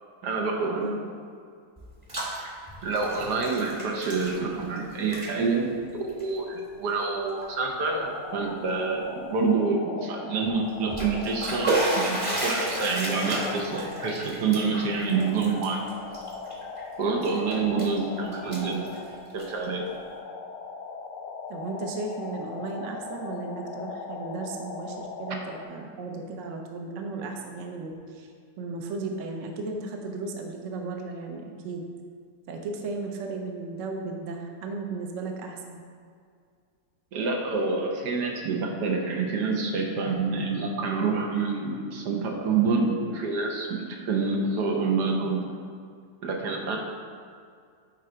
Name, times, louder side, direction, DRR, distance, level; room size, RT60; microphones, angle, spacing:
voice 1, 0.2-1.0 2.4-2.6 2.8-15.8 17.0-18.9 19.3-19.9 37.1-45.4 46.2-46.8, right 4 dB, 80° right, 1 dB, 1.5 m, -27 dB
Bathtub (filling or washing), 1.8-2.4 2.7-4.8 5.0-5.3 6.1-6.2 6.9-7.0 7.4-7.5 10.7-16.8 17.2-18.0 18.3-19.6, right 2 dB, 25° right, 0.9 m, -32 dB
sound 1, 7.8-25.6, left 4 dB, 85° left, 1.3 m, -39 dB
voice 2, 21.5-28.3 28.6-31.9 32.5-35.8, right 3 dB, 60° right, 2 dB, 1.0 m, -35 dB
9.4 x 3.8 x 4.4 m, 2.2 s
omnidirectional pair, 1.8 m